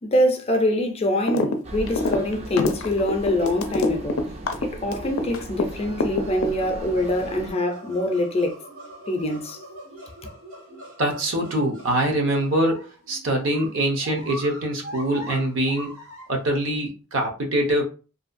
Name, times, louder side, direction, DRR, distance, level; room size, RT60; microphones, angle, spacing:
voice 1, 0.0-4.2 4.6-8.6 9.1-9.6, left 1 dB, 30° left, 0.4 m, -24 dB
sound 1, 1.3-1.6 1.8-5.7 6.0-6.9, left 3 dB, 85° left, 0.4 m, -25 dB
sound 2, 1.6-7.5, right 1 dB, 30° right, 0.4 m, -38 dB
sound 3, 5.7-16.6, right 1 dB, 90° right, 1.0 m, -42 dB
voice 2, 11.0-16.0 16.3-17.8, right 1 dB, 65° right, 0.7 m, -24 dB
2.7 x 2.2 x 2.5 m
head